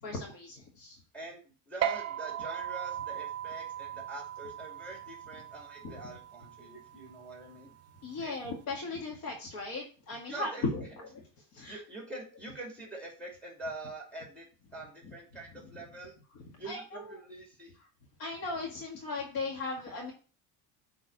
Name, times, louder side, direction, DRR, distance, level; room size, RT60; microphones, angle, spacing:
voice 1, 0.0-1.0 8.0-11.1 11.5-11.8 16.7-17.0 18.2-20.1, left 3 dB, 60° left, -1 dB, 2.0 m, -37 dB
voice 2, 1.1-7.7 8.2-8.3 10.3-10.7 11.7-14.5 14.7-16.2 16.6-17.8, right 2 dB, 5° left, 0 dB, 2.7 m, -45 dB
sound 1, 1.8-8.6, right 10 dB, 40° right, 0.6 m, -38 dB
8.9 x 4.0 x 4.0 m, 0.36 s
cardioid pair, 125°, 39 cm